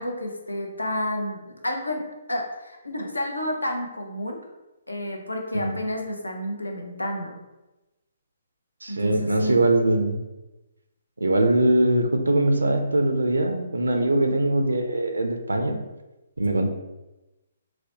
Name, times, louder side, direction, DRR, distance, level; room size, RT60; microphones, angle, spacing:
voice 1, 0.0-2.0 2.3-4.4 4.9-7.4 8.9-9.6 16.5-16.7, left 1 dB, 85° left, 2 dB, 0.6 m, -30 dB
voice 2, 8.8-10.2 11.2-15.8 16.4-16.7, right 1 dB, 80° right, 5 dB, 0.4 m, -22 dB
3.9 x 2.1 x 2.8 m, 1.0 s
figure-of-eight pair, 135°, 0 cm